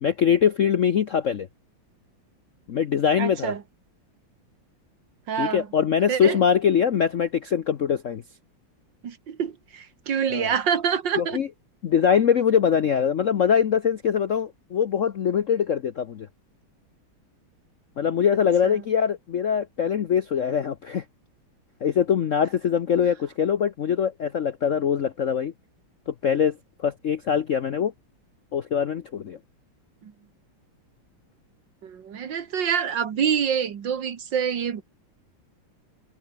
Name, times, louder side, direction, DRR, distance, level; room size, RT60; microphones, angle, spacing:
voice 1, 0.0-1.5 2.7-3.5 5.4-8.2 10.3-10.5 11.2-11.5 11.8-16.3 18.0-21.0 21.8-25.5 26.1-26.6 26.8-27.9 28.5-29.4, left 8 dB, 55° left, 0.8 m, -23 dB
voice 2, 3.2-3.6 5.3-5.7 6.1-6.4 9.0-11.4 18.6-18.8 30.0-30.1 31.8-34.8, right 7 dB, 60° right, 2.2 m, -26 dB
omnidirectional pair, 2.3 m